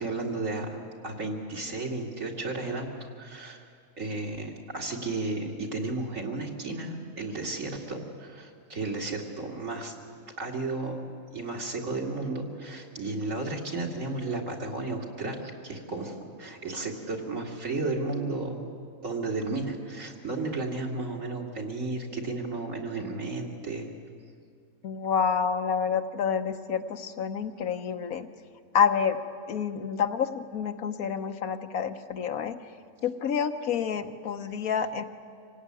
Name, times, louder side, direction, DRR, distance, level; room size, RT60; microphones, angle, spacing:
voice 1, 0.0-3.6 4.0-9.9 10.4-11.0 11.3-18.7 19.0-23.9, right 3 dB, 65° right, -1 dB, 3.0 m, -33 dB
voice 2, 24.8-28.3 28.7-29.2 29.5-32.6 33.0-35.2, left 7 dB, 85° left, 7 dB, 1.5 m, -28 dB
26.0 x 17.5 x 9.8 m, 2.2 s
omnidirectional pair, 1.5 m